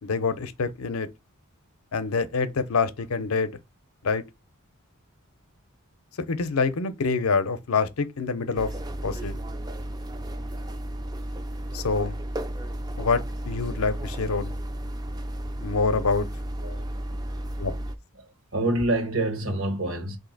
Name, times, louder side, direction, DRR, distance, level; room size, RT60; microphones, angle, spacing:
voice 1, 0.0-1.1 1.9-3.5 4.0-4.2 6.3-8.7 9.0-9.4 11.7-12.1 13.0-14.5 15.6-16.3 17.6-17.7, left 4 dB, 80° left, 0.6 m, -26 dB
sound 1, 8.6-18.0, right 1 dB, 20° right, 0.4 m, -33 dB
voice 2, 18.2-20.2, right 1 dB, 65° right, 1.0 m, -27 dB
4.1 x 2.7 x 3.9 m
head